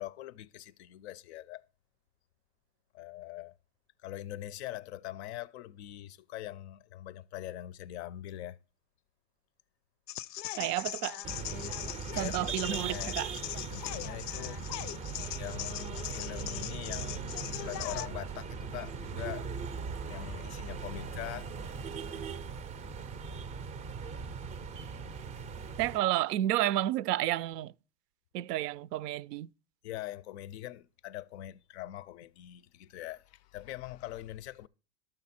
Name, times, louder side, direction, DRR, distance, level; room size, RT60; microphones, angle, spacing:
voice 1, 0.0-1.6 2.9-3.5 4.0-8.6 12.1-13.2 13.7-14.6 15.4-17.2 17.4-19.5 20.0-21.5 29.8-34.7, left 13 dB, 45° left, 0.4 m, -42 dB
sound 1, 10.1-18.1, left 14 dB, 90° left, 0.6 m, -40 dB
voice 2, 10.6-11.2 12.1-13.3 25.8-27.7 28.3-29.5, right 14 dB, 75° right, 0.6 m, -31 dB
sound 2, 11.2-26.0, right 5 dB, 15° right, 0.5 m, -39 dB
13.0 x 6.8 x 4.1 m
supercardioid pair, 150°, 48 cm